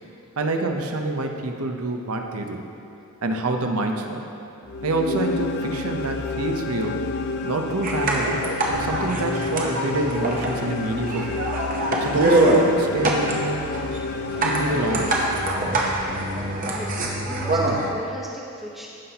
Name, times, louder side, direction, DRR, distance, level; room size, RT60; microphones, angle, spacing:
voice 1, 0.4-2.7 3.2-4.2 4.8-7.0 7.4-8.4 8.7-11.4 12.0-13.6 14.4-15.3, right 2 dB, 75° right, 4 dB, 0.8 m, -26 dB
sound 1, 4.7-16.0, left 3 dB, 45° left, 0.3 m, -30 dB
sound 2, 7.8-17.9, right 1 dB, 35° right, 0.9 m, -24 dB
voice 2, 16.6-18.9, equal, ahead, -5 dB, 0.9 m, -37 dB
15.0 x 5.7 x 2.9 m, 2.9 s
head